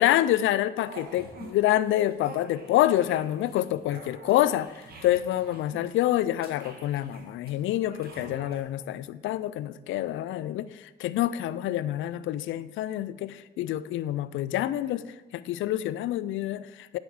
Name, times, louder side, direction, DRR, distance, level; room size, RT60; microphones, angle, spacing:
voice 1, 0.0-4.7 5.0-15.0 15.3-17.0, left 13 dB, 80° left, 16 dB, 0.4 m, -27 dB
sound 1, 0.8-1.5 1.8-8.6, right 3 dB, 50° right, 2.0 m, -47 dB
9.3 x 8.7 x 4.8 m, 1.2 s
cardioid pair, 90°, 20 cm